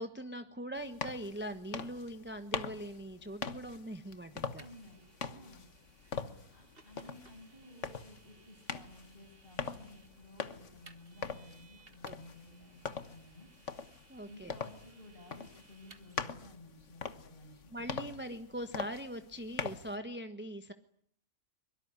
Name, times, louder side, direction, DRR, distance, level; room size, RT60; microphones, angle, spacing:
voice 1, 0.0-4.6 12.0-12.1 14.1-14.5 17.7-20.7, equal, 10° right, 7 dB, 1.2 m, -41 dB
sound 1, 0.8-20.0, left 6 dB, 55° left, 1.6 m, -43 dB
voice 2, 4.6-5.7 6.1-13.5 14.3-17.7, left 1 dB, 35° left, 4 dB, 7.0 m, -55 dB
Vehicle, 4.6-16.2, right 4 dB, 40° right, 1.9 m, -63 dB
24.5 x 22.5 x 9.7 m, 0.64 s
omnidirectional pair, 1.6 m